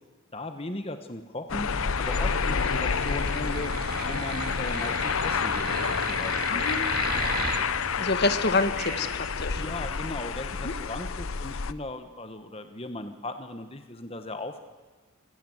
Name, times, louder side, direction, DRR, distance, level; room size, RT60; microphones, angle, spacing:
voice 1, 0.3-3.7 4.0-6.7 9.6-14.6, left 2 dB, 25° left, 8 dB, 1.1 m, -37 dB
sound 1, 1.5-11.7, left 6 dB, 70° left, 0.7 m, -29 dB
sound 2, 2.0-7.6, right 4 dB, 40° right, 2.5 m, -35 dB
sound 3, 3.8-10.2, equal, 5° right, 5.8 m, -43 dB
voice 2, 6.5-7.1 8.0-9.6 10.6-10.7, left 3 dB, 50° left, 11 dB, 1.3 m, -28 dB
25.5 x 17.0 x 7.8 m, 1.4 s
head